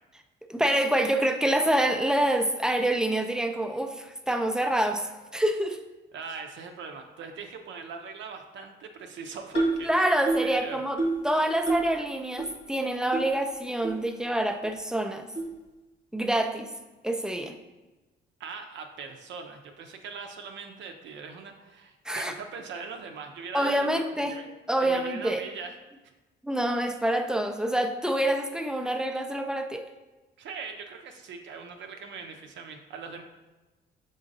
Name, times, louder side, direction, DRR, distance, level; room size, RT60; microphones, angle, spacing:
voice 1, 0.5-5.8 9.8-11.0 11.2-15.3 16.1-16.7 17.0-17.5 22.1-22.3 23.5-24.4 24.7-25.4 26.4-29.9, right 1 dB, 5° right, 6 dB, 0.4 m, -26 dB
voice 2, 6.1-10.2 10.4-10.8 18.4-24.0 24.3-24.5 24.8-25.7 30.4-33.2, right 5 dB, 65° right, 4 dB, 0.5 m, -41 dB
sound 1, 9.5-9.9 10.3-10.5 11.0-11.3 11.7-11.9 12.4-12.5 13.1-13.2 13.8-13.9 14.6-14.7 15.3-15.5, right 2 dB, 55° left, 1.2 m, -27 dB
5.0 x 3.7 x 2.6 m, 1.1 s
cardioid pair, 90°, 20 cm